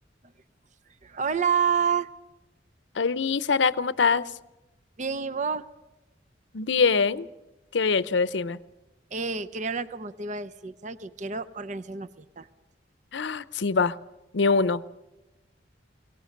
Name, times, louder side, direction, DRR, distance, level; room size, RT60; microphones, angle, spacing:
voice 1, 1.0-2.1 5.0-5.6 9.1-12.5, right 6 dB, 40° right, 12 dB, 0.7 m, -29 dB
voice 2, 3.0-4.3 6.5-7.3 7.7-8.6 13.1-14.0 14.3-14.9, left 5 dB, 75° left, 16 dB, 0.6 m, -24 dB
22.5 x 18.0 x 6.6 m, 1.0 s
head